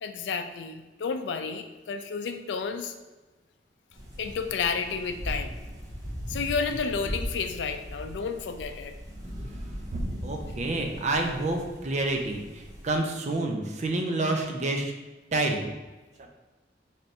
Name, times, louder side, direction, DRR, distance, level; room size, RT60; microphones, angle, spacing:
voice 1, 0.0-2.9 4.2-5.5 6.3-8.9, left 5 dB, 85° left, 7 dB, 0.4 m, -31 dB
sound 1, 3.9-13.0, equal, 20° right, 0.8 m, -38 dB
voice 2, 9.2-14.9 15.3-15.7 16.2-16.3, right 2 dB, 40° right, 3 dB, 0.5 m, -29 dB
3.3 x 2.6 x 4.1 m, 1.2 s
head